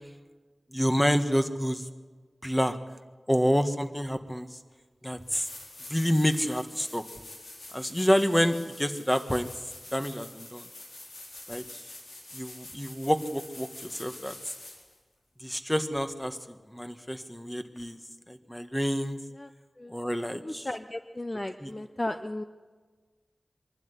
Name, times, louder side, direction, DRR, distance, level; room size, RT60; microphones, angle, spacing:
voice 1, 0.7-1.9 2.4-2.8 3.3-4.6 5.0-5.5 5.9-7.0 7.7-9.5 9.9-10.7 11.5-11.8 12.3-14.3 15.4-18.0 18.3-19.2 19.9-20.7 21.6-21.7, equal, 10° left, 8 dB, 1.6 m, -28 dB
sound 1, 4.7-4.8 5.2-15.0 17.8-17.9, left 2 dB, 85° left, 4.3 m, -46 dB
voice 2, 20.3-22.4, left 1 dB, 30° left, 8 dB, 0.8 m, -35 dB
23.5 x 12.0 x 9.7 m, 1.4 s
wide cardioid pair, 70°, 0 cm